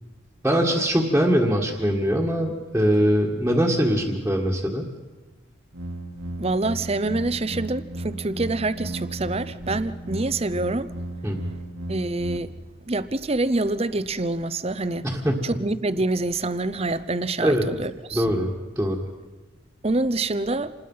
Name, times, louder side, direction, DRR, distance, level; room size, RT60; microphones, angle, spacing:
voice 1, 0.4-4.9 11.2-11.4 15.0-15.4 17.4-17.7 18.1-19.0, equal, 5° right, -4 dB, 1.8 m, -22 dB
sound 1, 5.7-12.4, right 1 dB, 80° right, 2.0 m, -35 dB
voice 2, 6.4-10.9 11.9-12.5 12.9-15.1 15.4-18.3 19.8-20.7, right 2 dB, 30° right, 15 dB, 0.7 m, -26 dB
27.5 x 20.0 x 5.6 m, 1.3 s
head